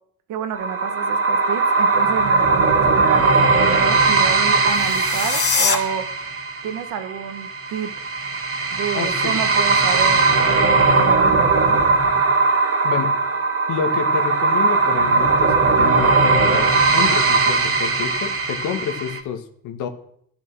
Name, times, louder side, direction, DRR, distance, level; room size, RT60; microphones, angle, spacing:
voice 1, 0.3-6.1 6.6-7.9 8.7-11.8, right 8 dB, 85° right, 9 dB, 1.6 m, -29 dB
sound 1, 0.5-19.2, right 4 dB, 50° right, 2.4 m, -19 dB
sound 2, 4.7-5.8, left 5 dB, 50° left, 2.1 m, -22 dB
voice 2, 8.9-9.4 12.8-13.2 13.7-19.9, left 8 dB, 90° left, 7 dB, 1.8 m, -28 dB
12.5 x 10.5 x 6.3 m, 0.67 s
cardioid pair, 90°, 30 cm